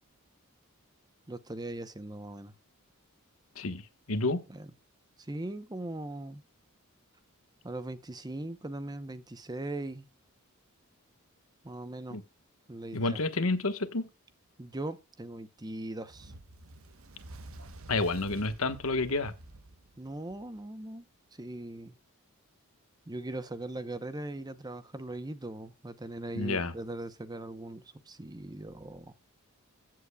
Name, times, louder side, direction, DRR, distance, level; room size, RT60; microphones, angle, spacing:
voice 1, 1.3-2.5 4.5-4.7 5.2-6.4 7.6-10.1 11.6-12.2 12.7-13.2 14.6-16.3 20.0-21.1 21.3-22.0 23.1-29.1, right 1 dB, 20° right, 0.7 m, -40 dB
voice 2, 4.1-4.4 12.1-12.2 12.9-14.1 17.9-19.3 26.4-26.7, left 2 dB, 70° left, 1.3 m, -29 dB
Fire, 16.0-20.6, right 2 dB, 65° right, 1.0 m, -49 dB
15.0 x 7.7 x 2.3 m
head